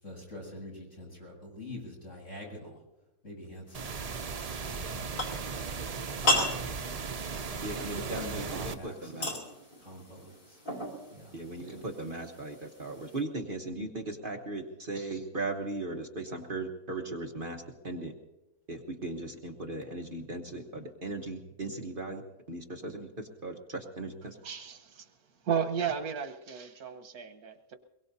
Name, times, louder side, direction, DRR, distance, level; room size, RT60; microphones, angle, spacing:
voice 1, 0.0-2.8 3.2-4.2 4.6-6.6 7.4-9.4 9.8-10.6 11.1-11.4, left 1 dB, 55° left, -3 dB, 8.1 m, -46 dB
sound 1, 3.7-13.2, left 1 dB, 90° left, 4.0 m, -37 dB
sound 2, 3.7-8.7, right 5 dB, 65° right, 0.3 m, -37 dB
voice 2, 7.6-9.3 11.3-18.1 18.7-22.2 22.5-24.4, right 2 dB, 40° right, 2 dB, 1.3 m, -38 dB
voice 3, 24.4-25.1 25.4-27.7, right 7 dB, 85° right, 7 dB, 1.7 m, -34 dB
24.0 x 22.0 x 2.8 m, 0.99 s
omnidirectional pair, 1.6 m